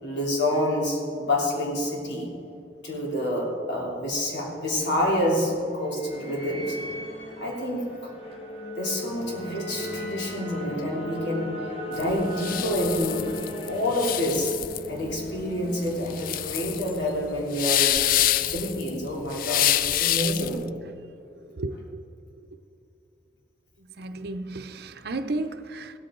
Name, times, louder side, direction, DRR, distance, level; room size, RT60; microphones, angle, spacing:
voice 1, 0.0-2.3 2.8-6.8 7.4-8.1 8.7-11.6 11.9-13.3 13.7-14.6 14.9-18.1 18.4-20.7, left 1 dB, 85° left, 3.2 m, -28 dB
sound 1, 4.1-17.9, left 1 dB, 35° left, 1.6 m, -38 dB
sound 2, 11.9-20.6, left 13 dB, 50° left, 0.3 m, -26 dB
voice 2, 24.0-25.9, right 2 dB, 65° right, 0.7 m, -32 dB
16.0 x 13.5 x 3.8 m
head